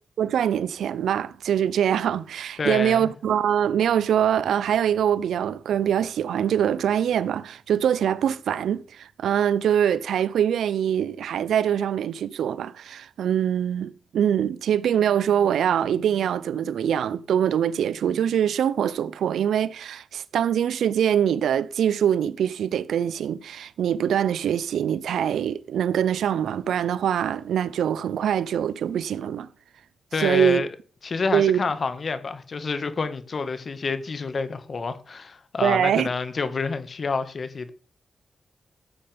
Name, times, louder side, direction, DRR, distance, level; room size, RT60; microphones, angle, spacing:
voice 1, 0.2-29.5 30.2-30.6 31.3-31.6 35.6-36.1, right 9 dB, 85° right, 0.6 m, -23 dB
voice 2, 2.6-3.1 30.1-30.7 31.0-37.7, left 4 dB, 55° left, 1.7 m, -28 dB
14.0 x 8.7 x 3.6 m
cardioid pair, 55°, 0 cm